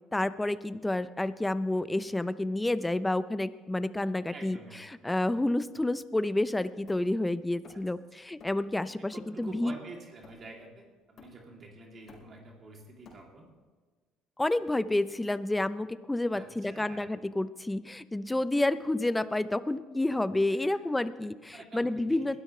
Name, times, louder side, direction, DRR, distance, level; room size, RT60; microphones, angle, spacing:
voice 1, 0.1-4.6 5.0-9.7 14.4-22.4, left 1 dB, 10° left, 15 dB, 0.7 m, -29 dB
voice 2, 4.3-5.1 7.7-7.8 9.0-13.5 16.3-17.1 20.6-20.8 21.5-22.4, right 2 dB, 40° right, 0 dB, 3.0 m, -48 dB
Hammer, 6.9-8.0 8.4-8.7 9.1-10.7 11.2-11.6 11.9-13.6, left 3 dB, 50° left, 4.4 m, -55 dB
21.5 x 12.5 x 3.3 m, 1.4 s
supercardioid pair, 75°, 0 cm